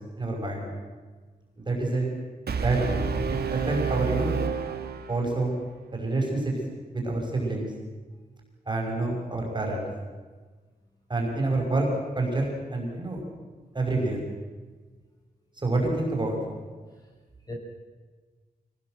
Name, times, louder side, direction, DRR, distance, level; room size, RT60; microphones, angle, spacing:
voice 1, 0.2-0.7 1.6-2.1 2.5-3.1 3.5-4.3 5.1-5.5 5.9-6.5 6.9-7.7 8.7-9.9 11.1-11.9 12.2-13.2 13.7-14.2 15.6-16.4, right 2 dB, 30° right, 0 dB, 5.7 m, -27 dB
Brass instrument, 2.5-5.6, right 5 dB, 85° right, 2.0 m, -29 dB
voice 2, 5.9-6.0 10.1-10.3 16.7-17.0 17.5-17.6, left 2 dB, 25° left, -1 dB, 5.4 m, -44 dB
24.5 x 18.0 x 7.8 m, 1.4 s
wide cardioid pair, 155°, 16 cm